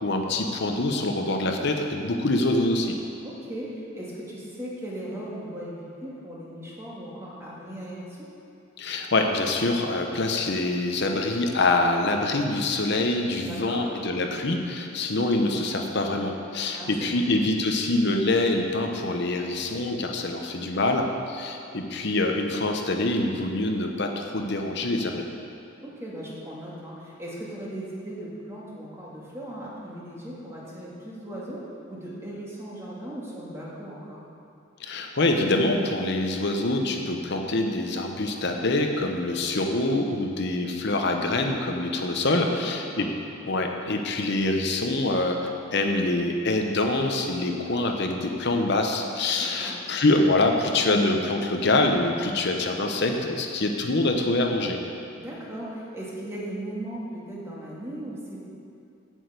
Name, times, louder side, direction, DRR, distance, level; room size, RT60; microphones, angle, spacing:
voice 1, 0.0-2.9 8.8-25.2 34.8-43.1 43.4-54.8, left 2 dB, 55° left, 3 dB, 0.8 m, -25 dB
voice 2, 3.2-8.3 13.4-13.9 16.7-17.4 25.8-34.2 42.3-43.1 49.3-49.8 55.1-58.4, right 1 dB, 15° right, -6 dB, 1.9 m, -38 dB
7.8 x 6.3 x 8.1 m, 2.6 s
head